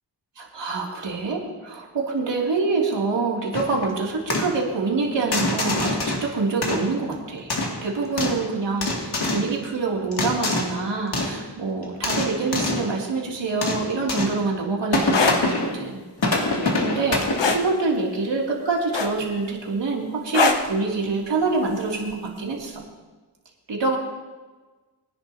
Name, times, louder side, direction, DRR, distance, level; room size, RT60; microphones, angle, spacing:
voice 1, 0.4-7.5 7.8-16.0 16.3-22.8 23.7-24.0, right 3 dB, 85° right, -2 dB, 2.7 m, -26 dB
sound 1, 3.5-3.8 4.3-4.6 5.3-6.3 6.6-7.1 7.5-8.5 8.8-9.5 10.1-10.8 11.1-11.4 11.8-12.9 13.6-14.4 14.9-15.8 16.2-17.7, left 2 dB, 65° left, 2.4 m, -25 dB
sound 2, 15.0-15.4 17.4-17.7 18.9-19.4 20.3-20.7 22.1-22.3, left 4 dB, 80° left, 1.3 m, -20 dB
23.0 x 10.5 x 2.8 m, 1.3 s
wide cardioid pair, 85°, 42 cm